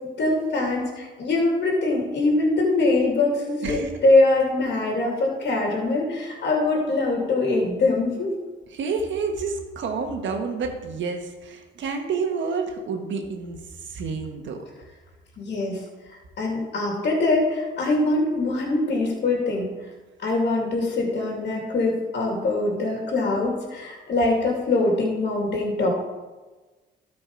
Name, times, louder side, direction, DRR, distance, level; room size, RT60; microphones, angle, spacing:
voice 1, 0.2-8.3 15.4-15.8 16.4-19.7 20.2-25.9, left 2 dB, 60° left, -1 dB, 2.7 m, -23 dB
voice 2, 8.7-14.6, right 5 dB, 70° right, 4 dB, 1.6 m, -29 dB
13.0 x 5.2 x 4.8 m, 1.2 s
cardioid pair, 90°, 20 cm